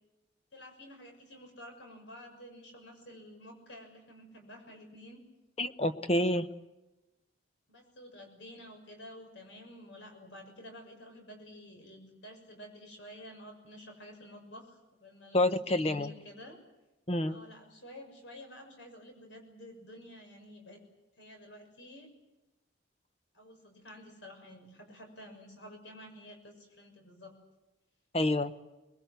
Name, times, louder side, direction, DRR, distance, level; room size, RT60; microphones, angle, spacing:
voice 1, 0.5-5.2 7.7-16.6 17.2-20.8 21.2-22.1 23.3-27.4, equal, 75° left, 4 dB, 6.5 m, -50 dB
voice 2, 5.6-6.5 15.3-16.1 17.1-17.4 28.1-28.5, left 1 dB, 30° left, 11 dB, 0.9 m, -28 dB
25.5 x 21.5 x 8.1 m, 1.1 s
head